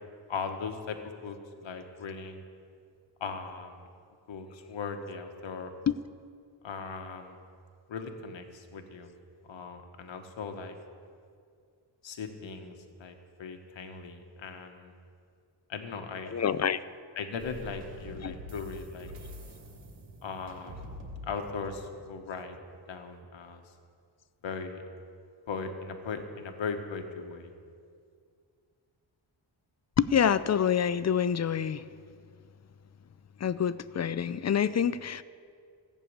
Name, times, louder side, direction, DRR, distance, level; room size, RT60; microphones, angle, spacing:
voice 1, 0.3-2.4 3.2-3.9 4.3-5.7 6.6-7.4 7.9-9.1 9.4-10.8 12.0-14.9 15.7-16.3 17.1-19.1 20.2-20.9 21.2-22.6 22.9-23.7 24.4-24.8 25.5-27.5, left 5 dB, 70° left, 6 dB, 1.3 m, -38 dB
voice 2, 16.3-16.8 18.2-18.3 30.0-31.8 33.4-35.2, left 8 dB, 35° left, 16 dB, 0.4 m, -26 dB
sound 1, 17.4-22.9, equal, 65° right, 2.9 m, -46 dB
14.5 x 6.8 x 8.6 m, 2.2 s
cardioid pair, 95°, 47 cm